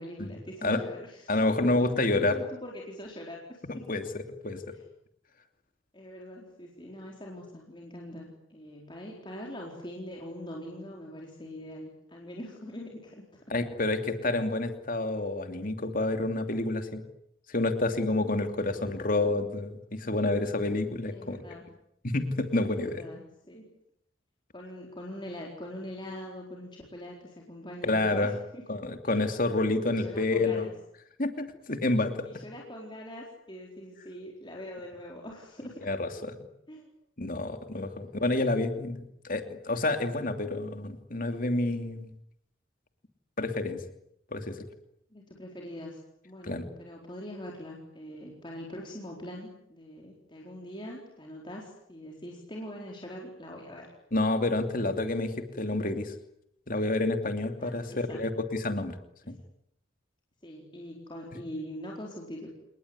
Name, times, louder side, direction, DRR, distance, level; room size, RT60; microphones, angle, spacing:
voice 1, 0.0-3.8 4.7-4.8 5.9-13.5 18.6-18.9 21.1-21.7 22.8-23.7 24.5-28.6 29.1-29.2 29.9-30.7 32.2-35.9 36.7-36.9 38.0-38.3 45.1-46.0 46.2-53.9 57.6-58.3 59.2-59.3 60.4-62.5, left 1 dB, 25° left, -1 dB, 4.3 m, -43 dB
voice 2, 1.3-2.4 3.7-4.0 4.4-4.6 13.5-17.0 17.5-21.4 22.0-23.0 27.8-28.3 28.7-30.7 31.2-32.4 35.8-36.4 37.2-42.1 43.4-43.8 44.3-44.6 46.4-46.7 54.1-56.1 56.7-59.0 59.3-59.4, left 2 dB, 45° left, 7 dB, 2.8 m, -29 dB
29.5 x 20.0 x 9.6 m, 0.77 s
head